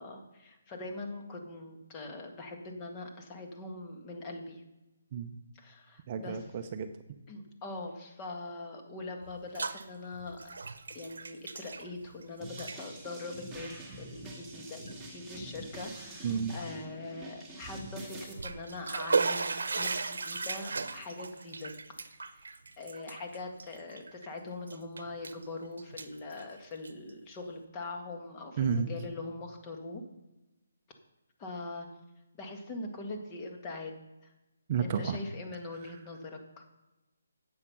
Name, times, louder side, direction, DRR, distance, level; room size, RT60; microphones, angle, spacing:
voice 1, 0.0-4.6 5.5-6.4 7.3-10.6 10.9-22.5 22.8-30.0 31.4-31.9 32.4-33.9 34.2-34.3 34.8-36.6, left 2 dB, 20° left, 3 dB, 1.7 m, -42 dB
voice 2, 6.1-6.9 16.2-16.5 28.6-28.9 34.7-35.2, right 7 dB, 30° right, 8 dB, 0.7 m, -31 dB
Bathtub (filling or washing), 9.2-9.8 10.1-12.2 12.5-12.8 13.5-13.7 14.3-14.4 14.9-15.0 18.1-24.3 24.7-25.5 25.8-27.1, right 4 dB, 75° right, 1.0 m, -35 dB
sound 1, 12.4-18.3, right 1 dB, 5° right, 2.2 m, -45 dB
9.7 x 8.0 x 5.9 m, 1.0 s
hypercardioid pair, 160°, 0 cm